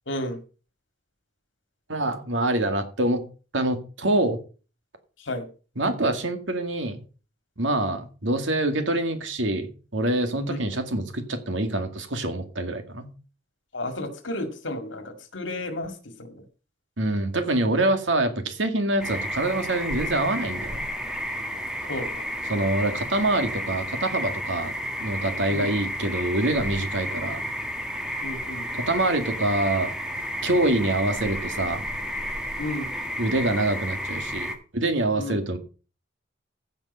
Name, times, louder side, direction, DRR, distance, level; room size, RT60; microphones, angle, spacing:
voice 1, 0.1-0.4 5.2-5.5 10.5-10.6 13.7-16.4 21.8-22.3 25.5-25.7 28.2-28.9 32.6-32.9 35.2-35.4, left 1 dB, 75° left, 8 dB, 2.1 m, -33 dB
voice 2, 1.9-3.2 3.5-4.4 5.8-7.0 7.6-13.1 17.0-20.8 22.5-24.7 25.0-27.4 28.8-29.9 30.4-31.8 33.2-35.6, right 2 dB, 85° right, 7 dB, 2.2 m, -25 dB
sound 1, 19.0-34.6, equal, 5° right, 1.4 m, -32 dB
15.0 x 5.3 x 5.4 m, 0.36 s
head